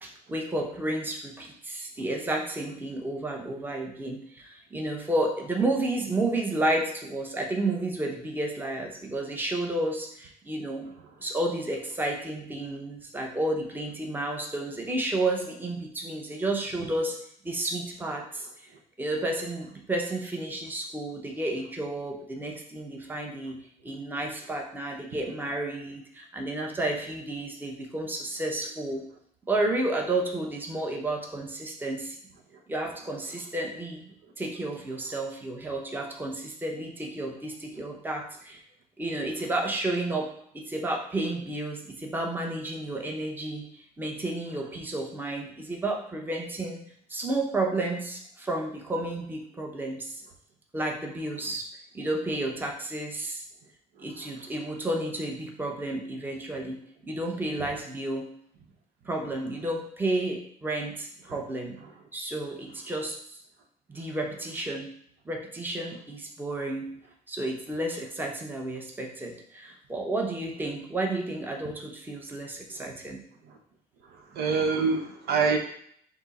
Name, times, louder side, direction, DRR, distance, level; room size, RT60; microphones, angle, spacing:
voice 1, 0.0-10.9 11.2-17.2 17.4-18.5 19.0-23.6 23.8-29.0 29.5-32.2 32.7-38.6 39.0-46.8 47.1-50.2 50.7-51.7 51.9-53.4 54.0-58.3 59.1-61.8 62.1-63.4 63.9-64.9 65.3-66.8 67.3-73.2, right 2 dB, 10° right, 1 dB, 0.7 m, -31 dB
voice 2, 74.1-75.6, right 5 dB, 70° right, 3 dB, 0.8 m, -27 dB
5.9 x 2.0 x 4.1 m, 0.64 s
cardioid pair, 110°, 17 cm